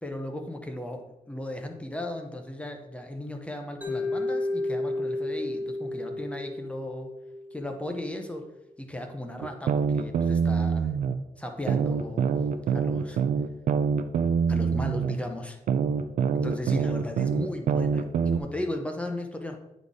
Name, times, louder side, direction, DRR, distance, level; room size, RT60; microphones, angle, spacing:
voice 1, 0.0-7.1 7.5-8.5 8.8-10.9 11.4-12.3 12.7-13.2 14.5-15.6 16.3-19.6, left 1 dB, 10° left, 4 dB, 0.6 m, -36 dB
Mallet percussion, 3.8-7.9, left 2 dB, 10° right, 1.0 m, -32 dB
sound 1, 9.4-11.1 11.7-15.1 15.7-18.4, right 6 dB, 60° right, 0.4 m, -25 dB
9.7 x 4.0 x 3.6 m, 0.95 s
wide cardioid pair, 180°, 15 cm